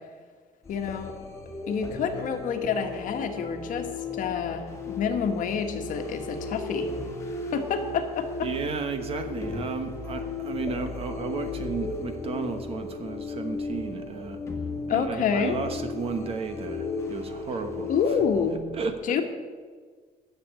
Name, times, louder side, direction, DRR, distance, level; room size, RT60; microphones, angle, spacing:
sound 1, 0.6-18.6, left 3 dB, 20° left, 1.8 m, -35 dB
voice 1, 0.7-1.1 1.7-3.9 4.1-6.9 7.5-8.2 14.9-15.6 17.9-18.6 19.1-19.2, left 6 dB, 60° left, 5 dB, 1.4 m, -28 dB
voice 2, 8.4-14.4 14.9-17.9 18.7-19.2, right 4 dB, 40° right, 7 dB, 1.2 m, -33 dB
11.0 x 6.9 x 8.3 m, 1.5 s
cardioid pair, 160°, 15 cm